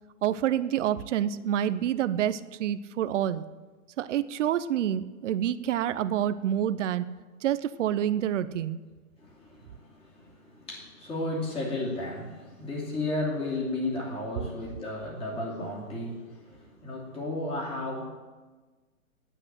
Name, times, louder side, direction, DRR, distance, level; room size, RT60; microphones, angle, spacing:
voice 1, 0.2-3.4 4.0-7.0 7.4-8.8, right 10 dB, 60° right, 14 dB, 0.7 m, -27 dB
voice 2, 9.2-18.1, left 2 dB, 15° left, -3 dB, 2.7 m, -34 dB
10.0 x 8.6 x 7.6 m, 1.3 s
hypercardioid pair, 140°, 42 cm